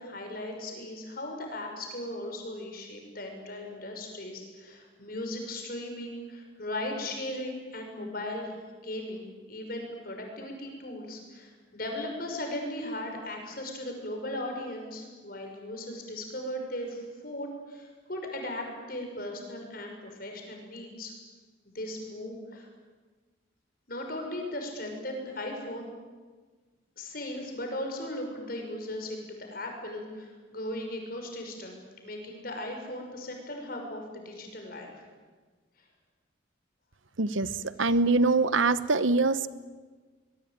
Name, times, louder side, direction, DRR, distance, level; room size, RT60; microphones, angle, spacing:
voice 1, 0.0-21.1 21.6-22.7 23.9-25.9 27.0-35.0, left 1 dB, 45° left, 3 dB, 6.0 m, -37 dB
voice 2, 37.2-37.5 37.8-39.4, right 3 dB, 80° right, 15 dB, 1.0 m, -23 dB
24.5 x 21.5 x 9.1 m, 1.4 s
head